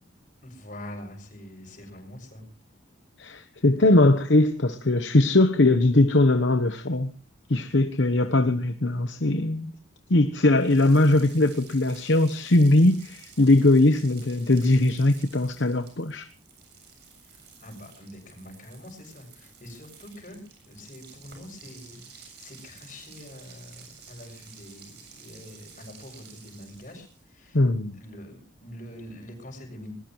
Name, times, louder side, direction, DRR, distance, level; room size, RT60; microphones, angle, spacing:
voice 1, 0.4-2.4 8.2-8.3 17.2-27.6 27.9-29.9, left 1 dB, 40° left, 7.0 m, -44 dB
voice 2, 3.2-7.1 7.5-9.7 10.1-16.3 27.5-28.0, left 2 dB, 65° left, 1.0 m, -20 dB
sound 1, 10.5-27.3, right 6 dB, 55° right, 7.3 m, -51 dB
21.0 x 20.0 x 3.1 m
head